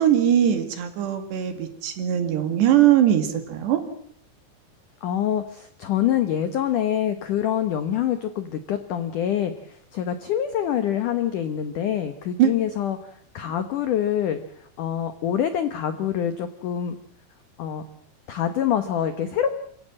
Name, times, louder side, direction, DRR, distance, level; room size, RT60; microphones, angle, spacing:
voice 1, 0.0-3.8 12.4-12.5, right 10 dB, 65° right, 8 dB, 4.1 m, -20 dB
voice 2, 5.0-9.5 9.9-13.0 13.3-14.4 14.8-16.9 17.6-17.8 18.3-19.5, left 10 dB, 80° left, 10 dB, 1.8 m, -25 dB
28.0 x 16.5 x 7.7 m, 0.66 s
omnidirectional pair, 5.4 m